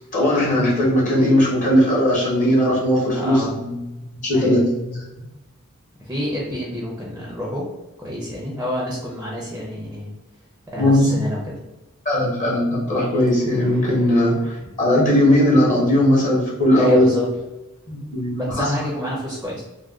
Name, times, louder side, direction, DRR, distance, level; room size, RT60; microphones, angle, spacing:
voice 1, 0.1-3.8 4.2-5.0 10.8-11.2 12.0-17.1 17.9-18.8, left 1 dB, 35° left, -4 dB, 0.9 m, -18 dB
voice 2, 3.1-3.6 4.3-4.6 6.0-7.6 8.0-10.1 10.7-11.6 16.7-17.3 18.4-19.6, left 1 dB, 10° right, -4 dB, 0.5 m, -28 dB
2.4 x 2.2 x 3.4 m, 1.0 s
head